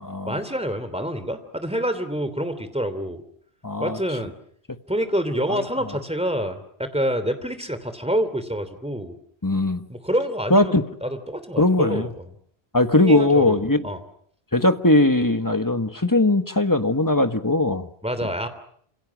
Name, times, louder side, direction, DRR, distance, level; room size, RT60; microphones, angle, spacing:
voice 1, 0.2-3.2 3.8-4.3 4.9-9.1 9.9-12.2 13.0-14.0 18.0-18.5, equal, 5° right, 10 dB, 3.0 m, -27 dB
voice 2, 3.6-4.0 5.5-5.6 9.4-9.8 10.5-10.8 11.6-12.1 12.7-13.8 14.5-17.9, left 2 dB, 20° left, 9 dB, 1.3 m, -19 dB
29.0 x 27.5 x 6.2 m, 0.62 s
omnidirectional pair, 1.1 m